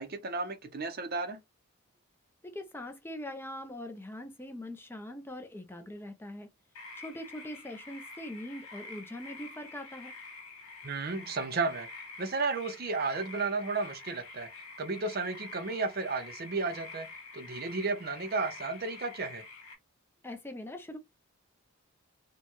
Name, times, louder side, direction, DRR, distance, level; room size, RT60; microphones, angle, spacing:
voice 1, 0.0-1.4 10.8-11.9 12.2-14.5 14.8-17.1 17.3-19.4, right 3 dB, 40° right, 0.6 m, -33 dB
voice 2, 2.4-6.5 7.0-10.1 20.2-21.0, left 1 dB, 10° left, 0.4 m, -42 dB
sound 1, 6.7-19.7, left 3 dB, 75° left, 1.4 m, -47 dB
4.4 x 2.2 x 2.9 m
head